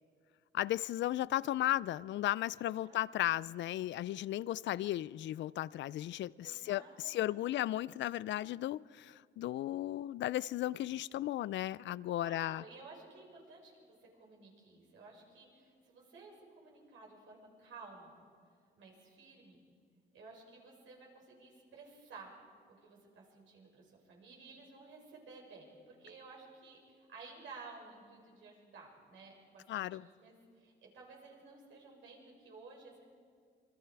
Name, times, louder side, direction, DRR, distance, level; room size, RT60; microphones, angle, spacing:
voice 1, 0.5-12.6 29.7-30.0, left 14 dB, 70° left, 0.4 m, -35 dB
voice 2, 2.6-3.1 6.4-7.5 12.2-18.1 18.8-19.6 20.1-22.3 22.7-33.1, right 4 dB, 75° right, 6.1 m, -54 dB
28.0 x 22.5 x 4.7 m
cardioid pair, 90°, 20 cm